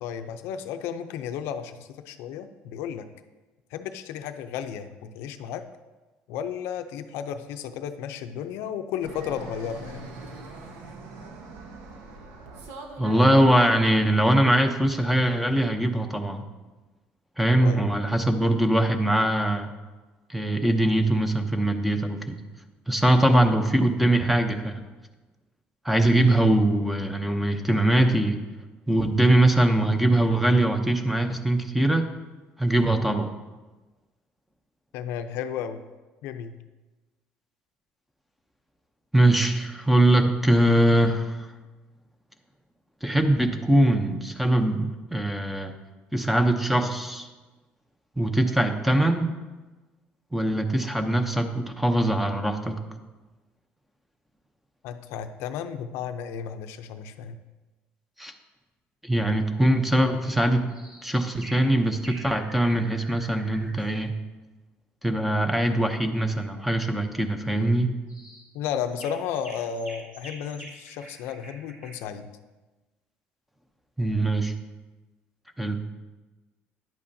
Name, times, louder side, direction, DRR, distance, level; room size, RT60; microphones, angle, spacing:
voice 1, 0.0-3.1 3.7-5.6 6.3-10.1 17.6-17.8 34.9-35.8 36.2-36.5 54.8-57.4 68.5-72.3, left 8 dB, 85° left, 8 dB, 0.6 m, -33 dB
Fixed-wing aircraft airplane, 9.0-14.2, right 3 dB, 90° right, 1.1 m, -43 dB
voice 2, 13.0-16.4 17.4-19.7 20.3-22.4 22.9-24.8 25.8-28.4 28.9-32.0 32.6-33.3 39.1-41.5 43.0-45.7 46.1-47.3 48.2-49.4 50.3-52.8 58.2-58.3 59.0-60.7 61.0-64.1 65.0-67.9 74.0-74.5 75.6-75.8, right 1 dB, 5° right, 7 dB, 0.7 m, -22 dB
sound 1, 59.9-60.1 60.7-61.0 61.4-61.7 62.0-63.8 67.4-67.6 68.1-68.4 68.9-71.9, right 1 dB, 25° right, 3.1 m, -46 dB
10.5 x 8.4 x 2.7 m, 1.2 s
cardioid pair, 120°, 4 cm